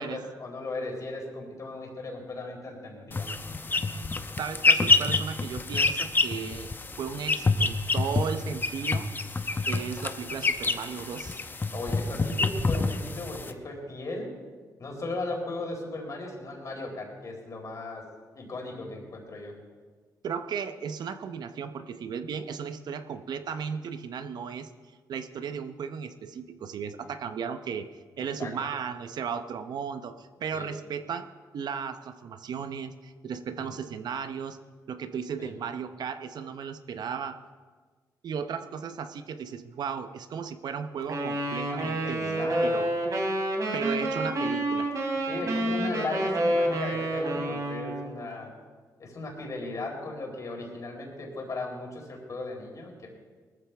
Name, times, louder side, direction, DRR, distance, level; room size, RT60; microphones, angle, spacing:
voice 1, 0.0-3.3 11.7-14.3 14.8-18.0 18.3-19.5 28.2-28.5 30.5-30.7 33.6-33.7 35.4-35.5 42.0-42.7 45.2-48.5 49.0-53.1, left 2 dB, 45° left, 0 dB, 4.3 m, -37 dB
sound 1, 3.1-13.5, left 3 dB, 25° left, 0.9 m, -27 dB
voice 2, 4.4-6.7 7.0-9.1 9.7-11.4 20.2-24.7 25.1-27.9 28.2-31.3 31.5-34.6 34.9-37.4 38.2-42.9 43.7-44.9, right 6 dB, 70° right, 10 dB, 0.8 m, -35 dB
Wind instrument woodwind instrument, 41.1-48.1, right 1 dB, 50° right, 3.1 m, -28 dB
20.0 x 14.0 x 3.5 m, 1.4 s
cardioid pair, 90°, 7 cm